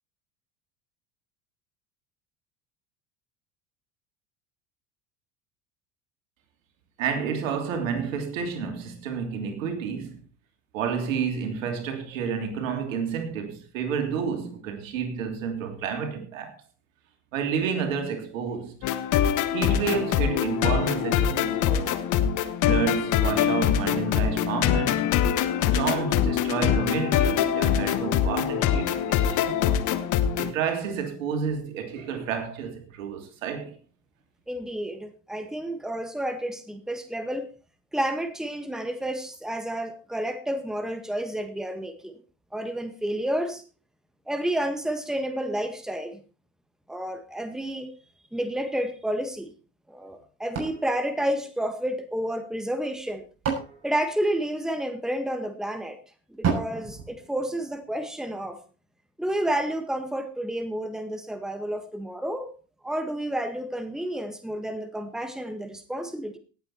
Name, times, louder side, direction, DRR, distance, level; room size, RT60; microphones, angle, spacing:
voice 1, 7.0-10.2 10.7-16.6 17.3-18.8 19.5-22.0 22.6-25.1 25.6-29.5 30.3-33.8, right 6 dB, 75° right, 3.2 m, -30 dB
sound 1, 18.8-30.5, left 9 dB, 50° left, 1.4 m, -24 dB
voice 2, 34.5-37.5 37.9-42.2 42.5-43.6 44.3-46.2 46.9-47.9 48.3-49.5 49.9-53.3 53.8-56.0 56.3-58.6 59.2-62.5 62.8-66.4, right 1 dB, ahead, 1.7 m, -30 dB
sound 2, 50.5-52.1 52.9-54.9 56.4-58.0, right 6 dB, 40° right, 6.9 m, -33 dB
18.0 x 8.4 x 4.3 m
hypercardioid pair, 80°, 39 cm